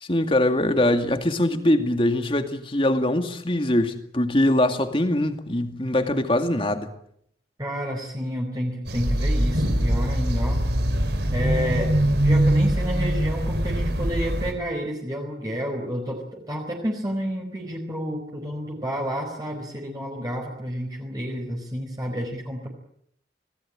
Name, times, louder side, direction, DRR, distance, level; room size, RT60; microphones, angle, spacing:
voice 1, 0.0-6.9, left 1 dB, 30° left, 2.3 m, -22 dB
voice 2, 7.6-10.6 11.3-11.9 12.2-22.7, equal, 20° right, 4.4 m, -30 dB
sound 1, 8.9-14.5, right 1 dB, 70° right, 4.6 m, -22 dB
26.5 x 19.0 x 8.8 m
head